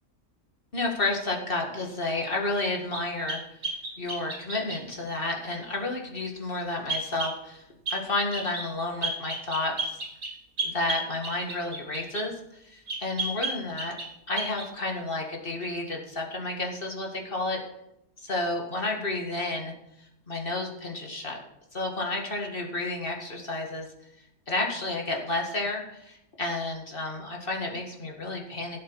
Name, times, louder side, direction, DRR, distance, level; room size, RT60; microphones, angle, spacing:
voice 1, 0.7-3.4 4.0-7.6 7.9-10.0 10.6-14.0 14.3-17.6 18.2-19.7 20.0-21.4 21.7-23.9 24.5-28.8, left 2 dB, 40° left, 1 dB, 2.0 m, -31 dB
sound 1, 2.9-4.8 6.9-7.4 7.9-8.0 8.3-8.7 9.0-12.3 12.9-14.1 14.4-14.7, right 2 dB, 90° right, 3.1 m, -33 dB
16.0 x 8.0 x 4.6 m, 0.83 s
omnidirectional pair, 1.5 m